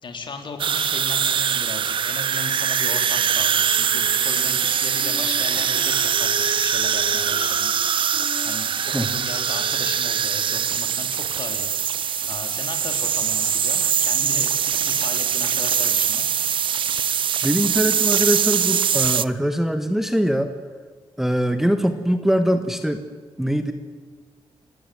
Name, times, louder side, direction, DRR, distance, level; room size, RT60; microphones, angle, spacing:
voice 1, 0.0-7.7 8.0-8.2 8.4-11.9 12.3-14.5 14.8-16.3, left 4 dB, 50° left, 5 dB, 3.6 m, -36 dB
sound 1, 0.6-19.2, right 8 dB, 50° right, 0.6 m, -22 dB
Wind instrument woodwind instrument, 3.7-10.5, left 3 dB, 65° left, 5.1 m, -40 dB
voice 2, 17.4-20.5 21.2-23.0 23.4-23.7, equal, 5° right, 8 dB, 1.3 m, -22 dB
29.0 x 17.0 x 7.9 m, 1.6 s
wide cardioid pair, 145°, 11 cm